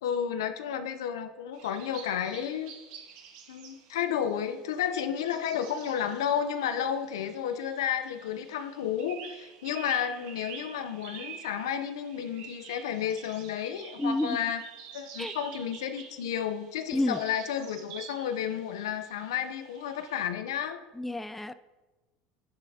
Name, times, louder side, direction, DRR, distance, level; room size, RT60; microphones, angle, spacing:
voice 1, 0.0-2.7 3.5-14.6 14.9-20.8, left 9 dB, 85° left, 9 dB, 0.8 m, -32 dB
sound 1, 1.5-20.3, right 7 dB, 70° right, 1.7 m, -48 dB
voice 2, 14.0-14.4 15.2-15.3 16.9-17.2 21.0-21.5, left 1 dB, 5° left, 12 dB, 0.5 m, -29 dB
9.8 x 9.6 x 2.9 m, 1.1 s
supercardioid pair, 95°, 2 cm